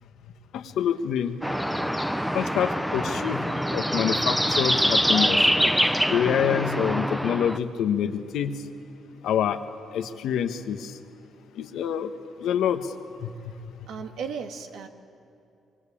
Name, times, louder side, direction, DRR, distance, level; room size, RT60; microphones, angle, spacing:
voice 1, 0.5-1.4 2.3-5.4 6.1-8.6 9.2-9.6 9.9-10.9 11.6-12.1 12.4-12.9 13.2-13.5, left 9 dB, 80° left, 8 dB, 1.4 m, -26 dB
sound 1, 1.4-7.6, equal, 5° right, 1.0 m, -24 dB
voice 2, 13.9-14.9, right 6 dB, 80° right, 5 dB, 1.9 m, -35 dB
25.5 x 23.5 x 8.7 m, 2.7 s
cardioid pair, 90°, 0 cm